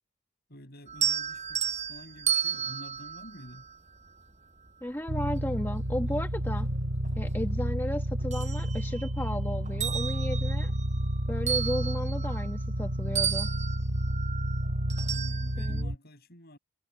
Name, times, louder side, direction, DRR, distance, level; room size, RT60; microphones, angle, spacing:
voice 1, 0.5-3.7 15.1-16.6, equal, 50° left, 7.7 m, -48 dB
sound 1, 0.9-4.2 5.9-6.0 6.5-7.7 8.0-9.3 9.7-12.9 13.1-15.8, right 8 dB, 35° right, 5.9 m, -33 dB
voice 2, 4.8-6.7 7.2-10.7 11.3-13.5 15.6-15.9, left 1 dB, 10° left, 1.2 m, -34 dB
sound 2, 5.1-16.0, right 1 dB, 85° right, 3.2 m, -30 dB
head